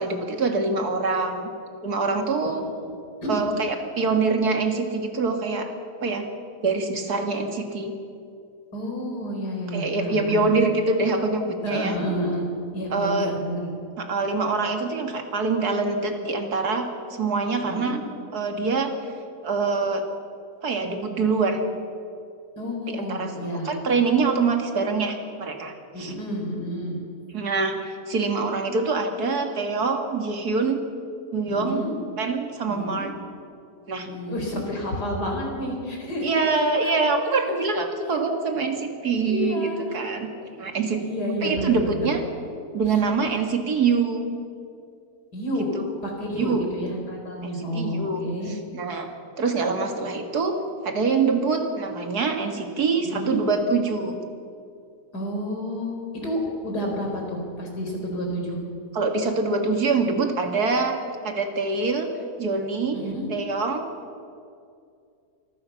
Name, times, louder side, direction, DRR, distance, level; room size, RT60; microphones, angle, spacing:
voice 1, 0.0-1.5 1.8-2.6 3.3-5.7 6.0-6.3 6.6-8.0 9.7-12.0 12.9-13.4 14.0-18.0 18.3-18.9 19.4-20.0 20.6-21.7 22.9-26.1 27.3-30.8 31.3-31.9 32.2-33.1 33.9-34.1 36.2-40.3 40.6-41.0 41.4-42.2 42.7-44.3 46.3-46.6 47.4-49.1 49.4-50.6 50.8-54.2 58.9-62.1 62.4-63.0 63.3-63.9, right 4 dB, 65° right, 4 dB, 2.4 m, -25 dB
voice 2, 8.7-10.5 11.6-12.4 12.7-13.7 17.6-17.9 22.6-23.7 25.9-27.0 31.5-31.9 32.7-33.1 34.0-36.4 36.8-36.9 39.3-40.0 41.0-42.1 45.3-45.7 46.0-48.5 53.0-53.4 55.1-58.6 62.9-63.3, equal, 75° left, 0 dB, 4.9 m, -30 dB
25.0 x 15.0 x 7.1 m, 2.4 s
omnidirectional pair, 1.8 m